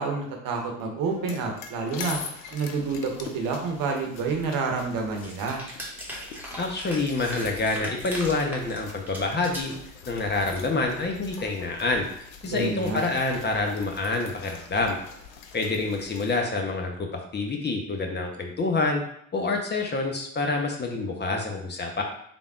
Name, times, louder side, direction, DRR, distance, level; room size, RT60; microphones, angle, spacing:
voice 1, 0.0-2.2 2.5-5.6 12.4-13.0, right 4 dB, 60° right, 2 dB, 1.0 m, -29 dB
sound 1, 1.0-16.4, left 5 dB, 90° left, 0.5 m, -43 dB
sound 2, 5.2-9.8 10.2-10.6, equal, 5° right, 1.3 m, -38 dB
voice 2, 6.6-9.7 10.1-12.1 12.4-15.0 15.5-19.0 19.3-22.0, left 3 dB, 25° left, 2 dB, 0.8 m, -27 dB
3.8 x 3.4 x 2.4 m, 0.71 s
hypercardioid pair, 60°, 39 cm